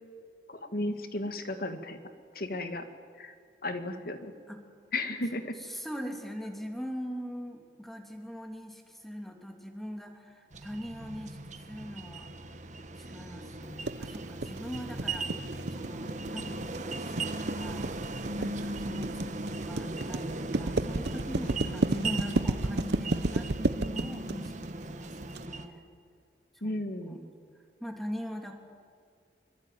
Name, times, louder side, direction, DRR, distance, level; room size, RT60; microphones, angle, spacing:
voice 1, 0.5-2.0 2.3-2.8 3.2-3.3 3.6-4.3 4.9-5.6 26.6-27.2, left 2 dB, 55° left, 8 dB, 2.2 m, -34 dB
voice 2, 5.5-11.4 11.7-12.3 13.0-25.9 26.6-26.7 27.0-27.3 27.8-28.5, equal, ahead, 3 dB, 3.0 m, -42 dB
sound 1, 10.5-25.7, right 2 dB, 45° right, 1.6 m, -37 dB
sound 2, 13.8-25.4, right 2 dB, 65° right, 1.0 m, -31 dB
25.5 x 23.5 x 9.3 m, 2.2 s
head